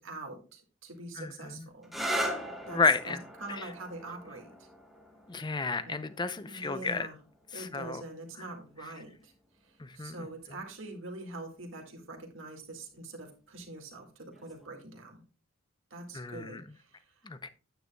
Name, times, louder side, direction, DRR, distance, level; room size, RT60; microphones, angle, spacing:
voice 1, 0.0-1.9 2.7-4.7 5.8-6.0 6.5-7.2 7.5-9.3 9.6-15.2 15.9-17.3, right 2 dB, 65° right, 2 dB, 2.0 m, -44 dB
voice 2, 1.2-1.7 2.7-3.2 5.3-7.1 7.5-8.0 9.8-10.2 16.1-16.6 17.2-17.5, left 4 dB, 20° left, 13 dB, 0.5 m, -31 dB
sound 1, 1.8-9.3 10.3-10.8 14.3-14.7, right 1 dB, ahead, 1.2 m, -40 dB
9.6 x 9.2 x 2.3 m, 0.35 s
head